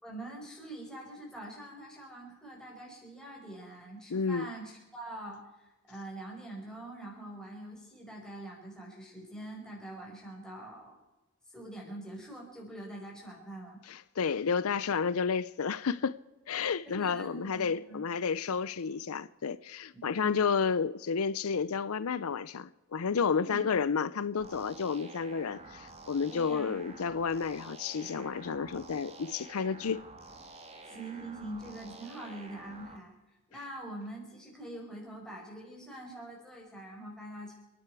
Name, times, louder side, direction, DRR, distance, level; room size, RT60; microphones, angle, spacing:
voice 1, 0.0-11.0 11.5-13.8 16.8-18.0 20.0-20.4 23.3-23.7 26.3-26.8 30.8-33.2 33.5-37.5, right 1 dB, 5° left, 5.2 m, -44 dB
voice 2, 4.1-4.5 13.9-16.2 16.5-30.0, left 6 dB, 80° left, 0.5 m, -31 dB
sound 1, 24.4-33.0, right 2 dB, 30° right, 1.7 m, -50 dB
29.5 x 10.0 x 4.8 m
head